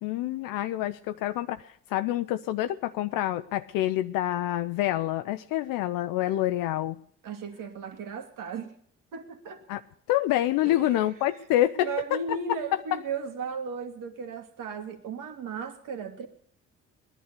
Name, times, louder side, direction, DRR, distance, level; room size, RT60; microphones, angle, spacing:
voice 1, 0.0-7.0 9.7-9.8 10.1-11.9, left 14 dB, 65° left, 10 dB, 0.6 m, -27 dB
voice 2, 7.2-8.7 9.1-9.6 10.7-11.2 11.8-16.3, right 5 dB, 60° right, 7 dB, 2.3 m, -36 dB
18.5 x 11.0 x 6.8 m, 0.64 s
hypercardioid pair, 45°, 36 cm